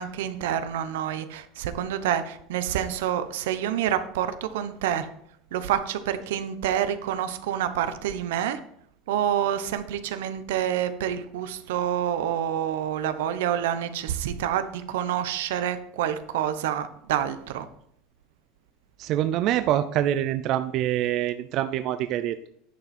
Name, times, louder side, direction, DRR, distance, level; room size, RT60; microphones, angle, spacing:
voice 1, 0.0-5.1 5.5-8.6 9.1-17.7, right 10 dB, 85° right, 10 dB, 0.8 m, -28 dB
voice 2, 19.0-22.5, right 12 dB, 45° right, 10 dB, 0.5 m, -25 dB
10.5 x 5.9 x 4.3 m, 0.70 s
supercardioid pair, 140°, 0 cm